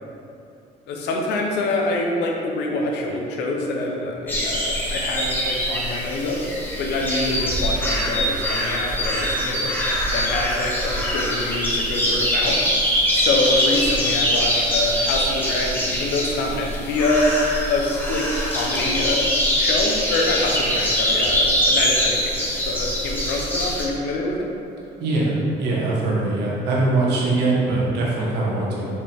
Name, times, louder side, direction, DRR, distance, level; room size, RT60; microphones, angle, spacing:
voice 1, 0.9-6.4 6.8-9.7 10.1-12.6 13.1-17.4 17.7-19.3 19.6-24.5, left 2 dB, 85° left, 0 dB, 0.9 m, -25 dB
sound 1, 4.3-23.9, equal, 10° left, 1.2 m, -23 dB
voice 2, 25.0-28.9, right 2 dB, 80° right, -4 dB, 1.4 m, -22 dB
5.5 x 4.9 x 3.6 m, 2.7 s
cardioid pair, 110°, 17 cm